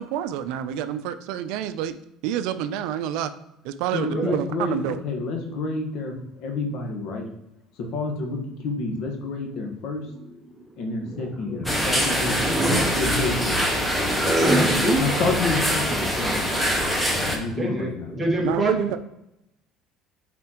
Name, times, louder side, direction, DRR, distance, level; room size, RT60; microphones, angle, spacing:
voice 1, 0.0-1.9 2.2-3.3 3.6-5.0 18.4-19.0, right 10 dB, 80° right, 11 dB, 0.4 m, -28 dB
voice 2, 3.9-6.2 6.4-7.2 7.9-10.1 10.8-12.4 12.7-13.6 15.0-16.5 17.3-18.1, left 3 dB, 70° left, 3 dB, 1.3 m, -29 dB
voice 3, 10.0-12.0 12.4-15.0 17.0-18.9, right 1 dB, 15° right, -1 dB, 1.7 m, -27 dB
sound 1, 11.6-17.4, equal, 5° left, 1.4 m, -24 dB
8.4 x 4.2 x 3.0 m, 0.85 s
cardioid pair, 110°, 0 cm